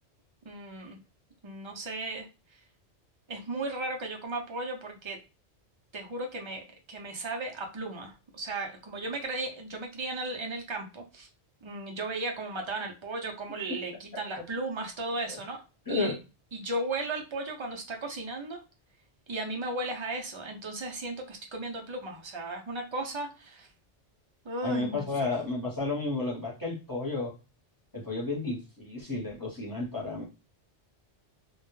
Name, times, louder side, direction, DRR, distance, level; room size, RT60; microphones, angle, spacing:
voice 1, 0.4-1.0 1.4-2.3 3.3-5.2 5.9-11.3 11.6-15.6 15.9-16.1 16.5-18.6 19.3-23.7 24.4-25.3, right 2 dB, 50° right, 2 dB, 0.3 m, -35 dB
voice 2, 15.9-16.2 24.6-27.3 27.9-30.2, left 3 dB, 20° left, -4 dB, 0.7 m, -32 dB
2.2 x 2.0 x 3.0 m, 0.30 s
omnidirectional pair, 1.2 m